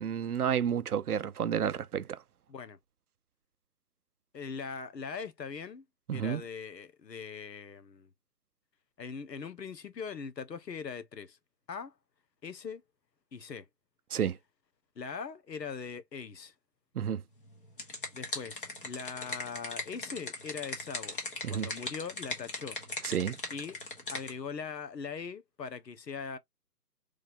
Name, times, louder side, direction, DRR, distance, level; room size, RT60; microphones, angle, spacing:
voice 1, 0.0-2.2 6.1-6.4 14.1-14.4 17.0-17.2 21.4-21.7 23.0-23.4, right 8 dB, 65° right, 0.5 m, -30 dB
voice 2, 4.3-5.8 6.1-8.1 9.0-11.4 11.7-11.9 12.4-12.8 13.3-13.6 15.0-16.5 18.1-21.2 21.5-22.8 23.5-23.8 24.1-26.4, left 6 dB, 80° left, 0.9 m, -41 dB
sound 1, 17.5-24.3, left 2 dB, 30° left, 1.1 m, -39 dB
3.7 x 3.2 x 2.6 m
figure-of-eight pair, 160°, 49 cm